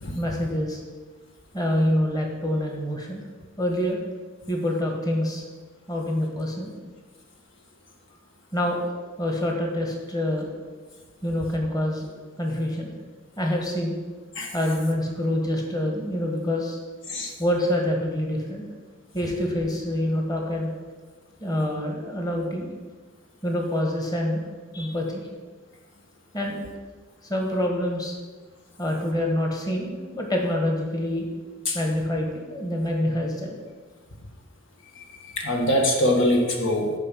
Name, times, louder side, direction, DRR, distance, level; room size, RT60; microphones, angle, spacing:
voice 1, 0.2-0.8 1.5-3.2 3.6-4.0 4.5-5.4 5.9-6.7 8.5-8.8 9.2-10.5 11.2-12.1 12.4-12.9 13.4-14.0 14.5-16.8 17.4-18.7 19.1-20.7 21.4-22.7 23.4-24.4 24.7-25.2 26.3-26.6 27.2-28.2 28.8-31.3 31.7-33.6, left 1 dB, 20° left, 0 dB, 1.7 m, -26 dB
voice 2, 34.9-36.9, left 1 dB, 65° left, 1 dB, 1.6 m, -23 dB
11.0 x 5.4 x 7.5 m, 1.4 s
head